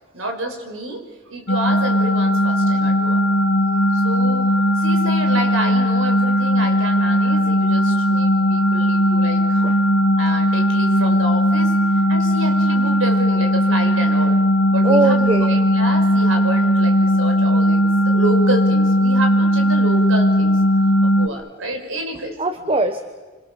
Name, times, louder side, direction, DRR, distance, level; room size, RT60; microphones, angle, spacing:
voice 1, 0.1-1.0 1.3-3.2 3.9-9.6 10.2-14.4 14.7-20.6 21.0-22.3 22.6-22.8, right 1 dB, 80° right, 4 dB, 5.4 m, -29 dB
sound 1, 1.5-21.3, equal, 75° left, 1.7 m, -17 dB
voice 2, 3.0-3.8 9.6-9.8 14.8-15.6 19.8-20.0 20.7-21.2 22.1-23.0, right 2 dB, 30° right, 9 dB, 1.3 m, -23 dB
29.0 x 25.5 x 7.1 m, 1.4 s
head